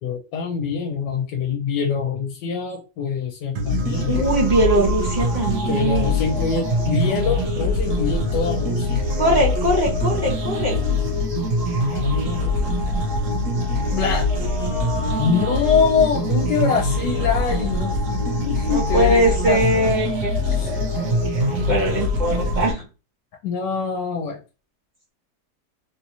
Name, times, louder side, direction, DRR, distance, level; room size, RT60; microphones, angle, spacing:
voice 1, 0.0-4.2 5.6-9.0 11.8-12.8 13.9-14.3 15.2-18.0 18.4-19.6 20.5-20.7 23.4-24.4, left 6 dB, 80° left, 1 dB, 1.3 m, -24 dB
sound 1, 3.5-22.7, left 1 dB, 70° right, 1.4 m, -23 dB
voice 2, 4.1-6.3 9.2-10.8 14.4-15.5 18.7-22.9, right 1 dB, 30° right, -3 dB, 1.0 m, -22 dB
3.6 x 2.7 x 2.7 m, 0.32 s
omnidirectional pair, 1.9 m